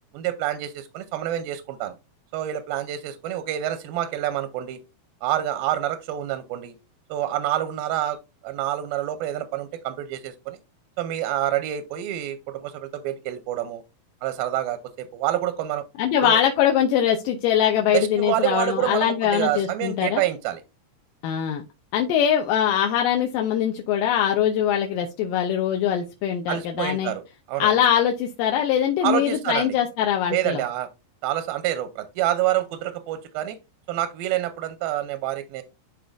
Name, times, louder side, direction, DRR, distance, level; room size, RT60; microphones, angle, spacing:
voice 1, 0.1-1.9 2.3-4.8 5.2-6.7 7.1-8.2 8.4-10.6 11.0-13.8 14.2-15.8 16.2-16.4 17.9-20.6 26.5-27.2 27.5-27.7 29.0-29.7 30.3-30.9 31.2-33.6 33.9-35.6, right 12 dB, 85° right, 8 dB, 2.4 m, -27 dB
voice 2, 16.0-20.2 21.2-21.6 21.9-27.1 27.6-30.6, left 9 dB, 80° left, 2 dB, 2.2 m, -22 dB
11.0 x 4.2 x 2.5 m, 0.27 s
omnidirectional pair, 4.3 m